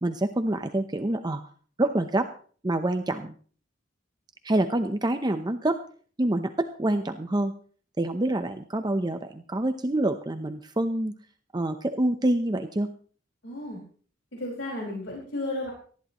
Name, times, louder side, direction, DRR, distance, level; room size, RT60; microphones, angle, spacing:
voice 1, 0.0-1.4 1.8-2.3 2.6-3.3 4.4-5.8 6.2-7.5 8.0-11.1 11.5-12.9, right 1 dB, 20° right, 8 dB, 0.7 m, -26 dB
voice 2, 13.4-13.8 14.3-15.7, left 1 dB, 75° left, -2 dB, 5.3 m, -33 dB
19.0 x 14.0 x 3.0 m, 0.43 s
head